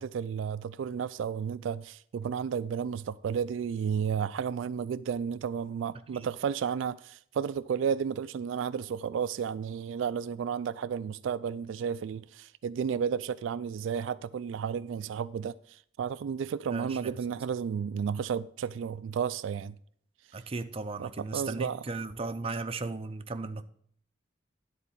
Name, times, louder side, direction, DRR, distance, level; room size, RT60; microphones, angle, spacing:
voice 1, 0.0-19.7 21.0-21.8, right 7 dB, 80° right, 0.3 m, -32 dB
voice 2, 16.7-17.1 20.3-23.6, right 3 dB, 30° right, 0.5 m, -36 dB
10.5 x 4.1 x 7.2 m
head